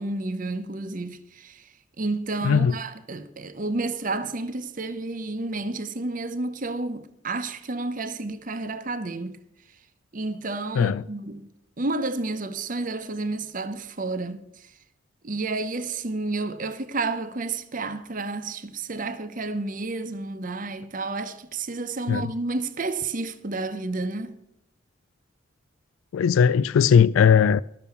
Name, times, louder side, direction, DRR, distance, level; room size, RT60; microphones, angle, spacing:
voice 1, 0.0-1.6 2.0-9.4 10.1-11.4 11.8-14.4 15.2-24.3, right 3 dB, 40° right, 0.8 m, -30 dB
voice 2, 2.4-2.8 10.8-11.0 22.1-22.2 26.1-27.6, left 7 dB, 90° left, 0.3 m, -18 dB
12.5 x 6.9 x 6.9 m
head